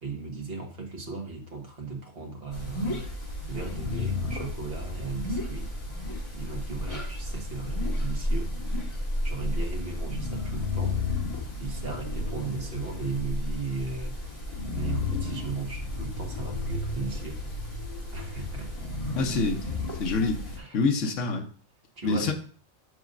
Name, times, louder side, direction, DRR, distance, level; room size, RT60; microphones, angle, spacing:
voice 1, 0.0-3.0 3.5-5.7 6.3-8.5 9.2-11.0 11.6-14.2 14.7-17.4 18.1-18.7 20.6-20.8 22.0-22.3, right 4 dB, 45° right, 0 dB, 1.6 m, -36 dB
sound 1, 2.5-20.6, left 2 dB, 20° left, 1.5 m, -32 dB
voice 2, 19.2-19.7 20.0-20.4 20.7-21.5 22.0-22.3, left 4 dB, 65° left, 4 dB, 1.2 m, -26 dB
7.1 x 6.3 x 2.6 m, 0.42 s
omnidirectional pair, 1.5 m